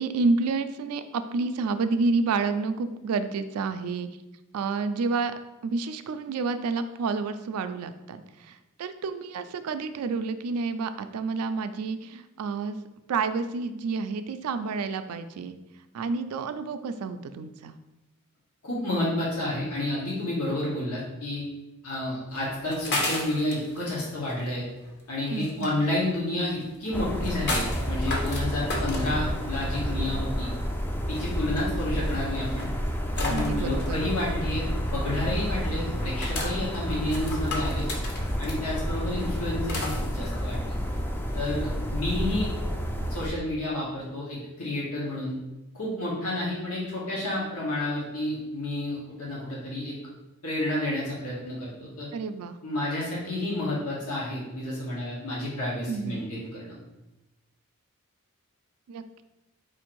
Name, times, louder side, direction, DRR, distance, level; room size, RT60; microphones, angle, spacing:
voice 1, 0.0-4.1 4.5-5.3 5.6-12.8 13.1-15.6 15.9-17.7 25.3-25.8 33.3-34.0 52.1-52.6 55.9-56.2 58.9-59.0, right 4 dB, 90° right, 10 dB, 0.4 m, -29 dB
voice 2, 18.6-21.4 21.8-24.7 25.1-30.5 31.1-32.7 33.2-37.9 38.4-40.7 41.3-42.5 43.1-45.4 45.7-50.0 50.4-52.1 52.6-56.8, left 1 dB, 80° left, -5 dB, 1.2 m, -30 dB
sound 1, 22.3-41.5, left 2 dB, 50° left, 0.8 m, -36 dB
sound 2, 26.9-43.3, equal, 10° left, 0.3 m, -30 dB
4.6 x 2.6 x 4.5 m, 1.0 s
head